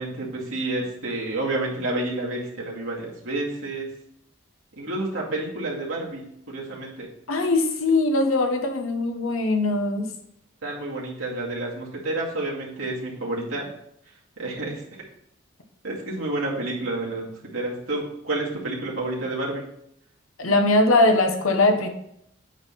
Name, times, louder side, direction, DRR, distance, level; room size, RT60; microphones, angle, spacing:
voice 1, 0.0-3.9 4.8-7.1 10.6-13.6 14.4-14.7 15.8-19.6, right 2 dB, 75° right, -3 dB, 2.3 m, -29 dB
voice 2, 7.3-10.1 20.4-21.9, left 2 dB, 80° left, 5 dB, 1.0 m, -21 dB
8.7 x 3.6 x 5.7 m, 0.73 s
head